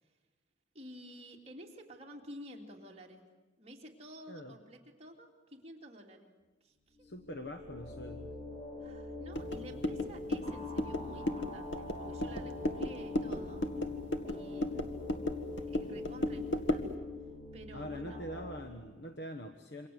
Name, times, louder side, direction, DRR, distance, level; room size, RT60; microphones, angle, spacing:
voice 1, 0.7-3.2 3.6-6.3 6.6-7.2 8.8-13.6 14.2-15.0 15.6-17.0 17.5-18.2, equal, 35° right, 1 dB, 3.0 m, -51 dB
voice 2, 7.0-8.4 17.7-19.9, equal, 60° left, 7 dB, 1.3 m, -43 dB
sound 1, 7.0-18.6, left 3 dB, 40° left, 6.3 m, -43 dB
sound 2, 9.3-16.9, left 1 dB, 80° left, 1.8 m, -36 dB
27.5 x 25.0 x 8.0 m, 1.2 s
head